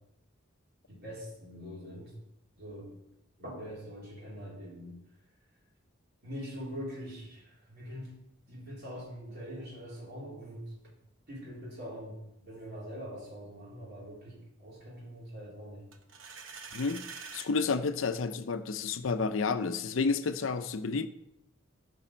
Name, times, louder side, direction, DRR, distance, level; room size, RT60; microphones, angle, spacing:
voice 1, 0.9-2.1 2.6-2.9 3.4-5.0 6.2-8.1 8.5-10.9 11.3-15.9, equal, 55° right, 3.8 m, -43 dB
sound 1, 15.9-17.5, right 5 dB, 80° right, 1.0 m, -45 dB
voice 2, 16.7-17.1 17.3-21.1, left 4 dB, 80° left, 0.6 m, -30 dB
15.0 x 5.4 x 4.4 m
head